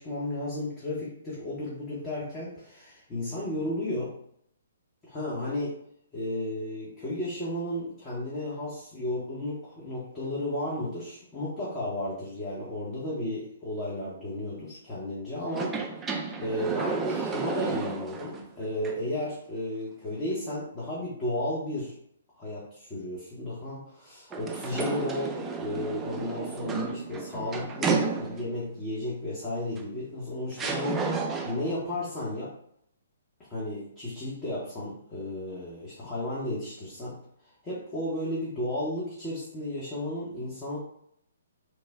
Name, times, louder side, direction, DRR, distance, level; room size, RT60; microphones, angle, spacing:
voice 1, 0.0-4.1 5.1-5.7 6.1-15.8 16.4-21.9 22.4-32.5 33.5-37.2 37.6-40.8, left 1 dB, 20° left, -8 dB, 0.9 m, -33 dB
sound 1, 15.5-18.4 18.8-18.9 24.3-28.6 29.8-29.9 30.6-31.7, right 4 dB, 15° right, 0.3 m, -32 dB
3.1 x 2.0 x 3.5 m, 0.70 s
figure-of-eight pair, 125°, 0 cm